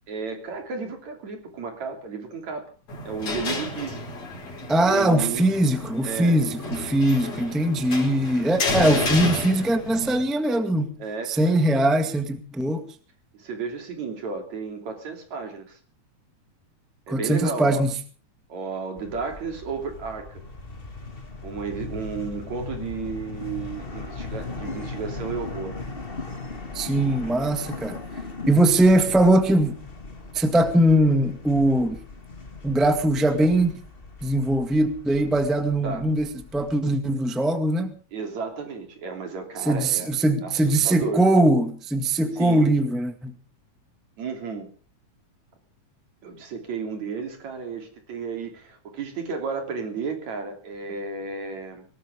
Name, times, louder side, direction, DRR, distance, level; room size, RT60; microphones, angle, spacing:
voice 1, 0.1-2.6 3.0-4.1 4.9-5.5 6.0-6.5 11.0-11.5 13.3-15.8 17.1-17.8 18.5-20.4 21.4-25.8 35.8-36.1 38.1-40.1 40.4-41.2 42.3-42.6 44.2-44.7 46.2-51.9, right 5 dB, 65° right, 4.4 m, -33 dB
sound 1, 2.9-10.2, left 3 dB, 60° left, 6.0 m, -31 dB
voice 2, 4.7-10.9 11.4-12.8 17.1-17.9 26.7-28.0 28.5-29.8 30.3-32.0 32.6-33.7 34.2-37.9 39.6-43.3, right 1 dB, ahead, 1.1 m, -21 dB
sound 2, 19.0-36.7, left 3 dB, 20° left, 1.8 m, -38 dB
20.0 x 19.0 x 3.6 m
omnidirectional pair, 3.4 m